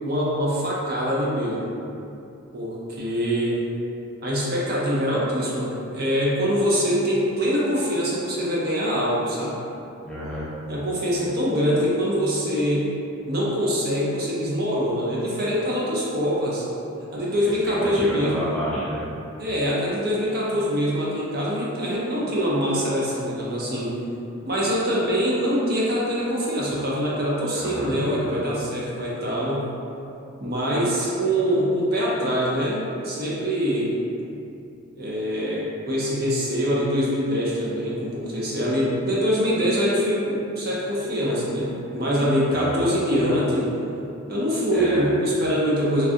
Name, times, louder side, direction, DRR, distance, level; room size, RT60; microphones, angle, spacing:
voice 1, 0.0-1.7 2.5-3.6 4.2-9.6 10.7-12.9 13.3-16.7 17.1-18.5 19.4-23.9 24.4-29.6 30.4-33.9 34.9-43.7 44.3-46.1, equal, 50° right, -6 dB, 0.6 m, -24 dB
voice 2, 10.0-10.5 17.4-19.1 27.5-28.0 42.5-42.9 44.7-45.1, left 1 dB, ahead, -10 dB, 0.3 m, -30 dB
3.2 x 2.4 x 2.6 m, 2.7 s
head